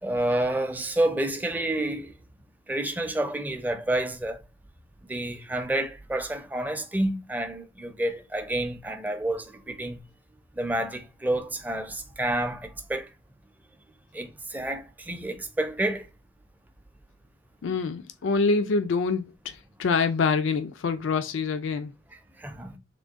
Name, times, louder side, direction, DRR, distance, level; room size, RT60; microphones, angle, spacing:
voice 1, 0.0-2.1 2.7-4.4 5.1-10.0 10.5-13.1 14.1-16.1 22.4-22.8, right 1 dB, 10° right, 0.4 m, -29 dB
voice 2, 17.6-21.9, left 4 dB, 90° left, 0.4 m, -26 dB
3.7 x 2.2 x 3.5 m
head